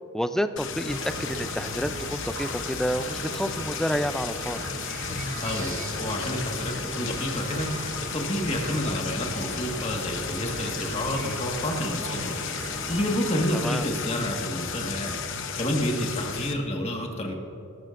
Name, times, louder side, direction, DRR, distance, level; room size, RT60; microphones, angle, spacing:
voice 1, 0.1-4.6 13.6-13.8, equal, ahead, 10 dB, 0.3 m, -29 dB
sound 1, 0.6-16.5, left 6 dB, 55° left, 0.9 m, -34 dB
sound 2, 0.9-13.2, right 3 dB, 35° right, 0.6 m, -39 dB
voice 2, 5.4-17.3, equal, 30° left, 1 dB, 1.6 m, -30 dB
21.5 x 12.5 x 2.6 m, 2.7 s
head